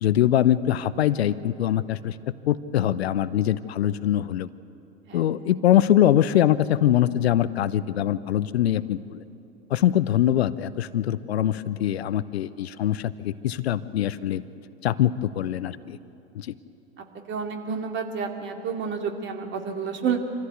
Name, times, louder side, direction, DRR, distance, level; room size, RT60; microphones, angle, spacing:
voice 1, 0.0-2.2 2.5-4.5 5.1-9.2 9.7-14.4 14.8-16.0 16.3-16.5, left 11 dB, 70° left, 16 dB, 0.7 m, -23 dB
voice 2, 17.3-20.2, right 6 dB, 35° right, 4 dB, 2.5 m, -29 dB
25.0 x 15.0 x 8.2 m, 2.8 s
figure-of-eight pair, 95°, 33 cm